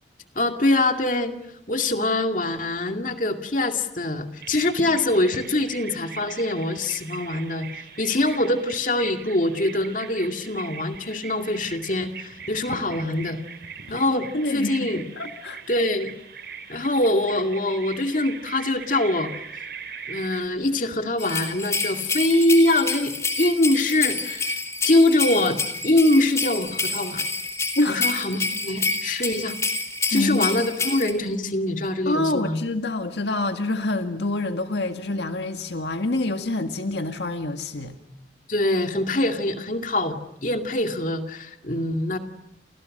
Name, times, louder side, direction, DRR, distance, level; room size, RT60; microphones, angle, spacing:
voice 1, 0.4-1.4 1.7-13.4 13.9-15.0 15.7-16.1 16.7-19.3 20.1-27.3 27.9-29.6 30.1-32.6 38.5-42.2, left 1 dB, 45° left, 2.3 m, -23 dB
Bird vocalization bird call bird song, 4.4-20.5, right 5 dB, 60° right, 3.8 m, -40 dB
voice 2, 14.3-15.6 27.8-28.1 30.1-30.7 32.1-37.9, left 2 dB, 80° left, 1.8 m, -27 dB
sound 1, 21.2-31.1, left 3 dB, 15° left, 2.9 m, -28 dB
29.5 x 29.5 x 6.6 m
head